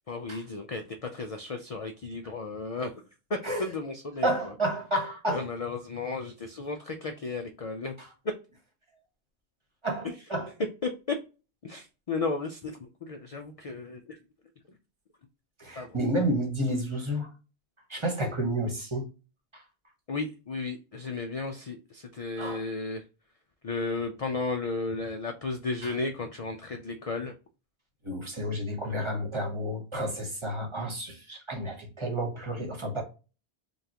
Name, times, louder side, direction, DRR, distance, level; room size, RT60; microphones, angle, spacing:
voice 1, 0.1-2.9 3.3-4.3 5.3-7.9 10.0-10.1 10.8-11.2 11.6-14.2 15.8-16.0 20.1-23.0 23.6-27.3, left 3 dB, 50° left, 0.4 m, -34 dB
voice 2, 4.2-5.4 9.8-10.5 15.6-17.3 17.9-19.0 22.4-22.6 25.8-25.9 28.0-33.0, right 1 dB, 30° right, 1.1 m, -30 dB
5.2 x 2.4 x 2.8 m
omnidirectional pair, 1.1 m